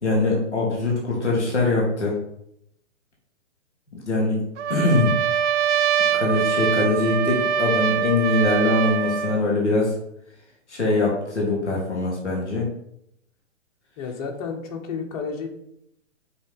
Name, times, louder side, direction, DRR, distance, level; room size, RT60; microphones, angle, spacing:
voice 1, 0.0-2.1 4.0-4.4 4.7-5.2 6.1-9.9 10.7-12.7, left 2 dB, ahead, -19 dB, 0.3 m, -22 dB
Trumpet, 4.6-9.4, right 8 dB, 65° right, 0.6 m, -23 dB
voice 2, 14.0-15.5, left 5 dB, 30° left, 1 dB, 1.1 m, -31 dB
5.4 x 4.0 x 5.3 m, 0.75 s
hypercardioid pair, 155°, 38 cm